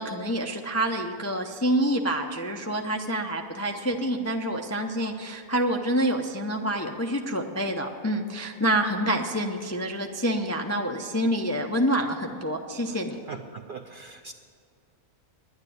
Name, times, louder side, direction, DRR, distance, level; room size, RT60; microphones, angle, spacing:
voice 1, 0.0-13.2, right 1 dB, 25° left, 3 dB, 0.3 m, -27 dB
voice 2, 13.3-14.3, right 5 dB, 60° right, 5 dB, 0.6 m, -40 dB
10.5 x 9.5 x 9.3 m, 2.2 s
omnidirectional pair, 1.4 m